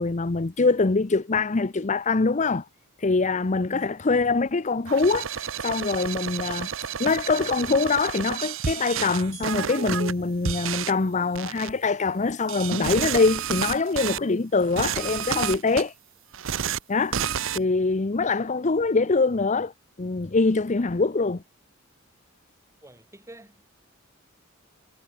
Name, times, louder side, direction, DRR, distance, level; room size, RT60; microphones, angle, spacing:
voice 1, 0.0-2.6 3.0-5.3 5.6-6.7 7.0-15.9 16.9-17.2 17.5-19.7 20.0-21.4, left 3 dB, 35° left, 0.7 m, -24 dB
sound 1, 4.9-10.1 10.4-10.9 11.3-11.7 12.5-14.2 14.6-15.8 16.3-16.8 17.1-17.6, right 8 dB, 65° right, 0.7 m, -30 dB
voice 2, 22.8-23.8, right 1 dB, 15° right, 2.1 m, -48 dB
head